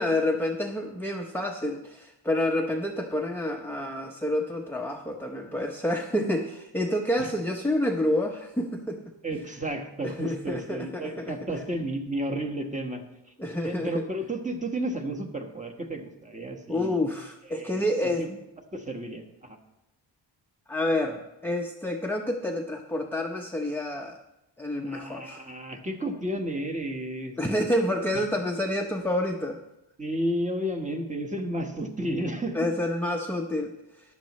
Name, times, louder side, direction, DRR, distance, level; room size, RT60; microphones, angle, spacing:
voice 1, 0.0-9.1 10.0-11.4 13.4-14.0 16.7-18.4 20.7-24.2 24.6-25.4 27.4-29.6 32.5-33.7, left 1 dB, 5° left, 1 dB, 0.7 m, -28 dB
voice 2, 9.2-13.0 13.6-17.0 17.5-17.9 18.2-18.3 18.7-19.6 24.8-27.4 28.1-28.2 30.0-32.6, right 1 dB, 15° right, 2 dB, 1.3 m, -32 dB
14.0 x 10.5 x 3.1 m, 0.91 s
wide cardioid pair, 120°, 47 cm